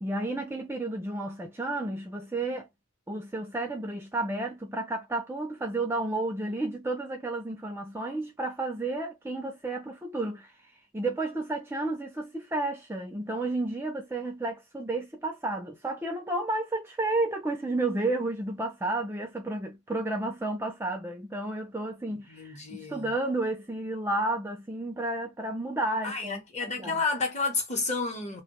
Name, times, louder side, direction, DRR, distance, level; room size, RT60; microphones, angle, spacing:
voice 1, 0.0-2.7 3.1-10.5 10.9-27.0, right 2 dB, 10° right, 0.4 m, -32 dB
voice 2, 22.1-23.1 26.0-28.4, left 3 dB, 30° left, 0.8 m, -31 dB
2.1 x 2.1 x 2.9 m
head